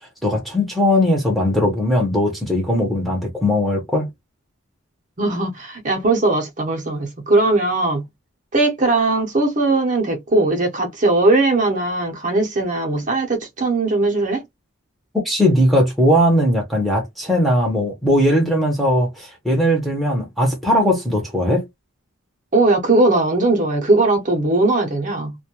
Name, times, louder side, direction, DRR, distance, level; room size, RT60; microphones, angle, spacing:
voice 1, 0.2-4.1 15.2-21.6, equal, ahead, 0.6 m, -19 dB
voice 2, 5.2-8.0 8.5-14.4 22.5-25.4, right 2 dB, 40° right, 0.6 m, -19 dB
2.2 x 2.1 x 2.8 m
head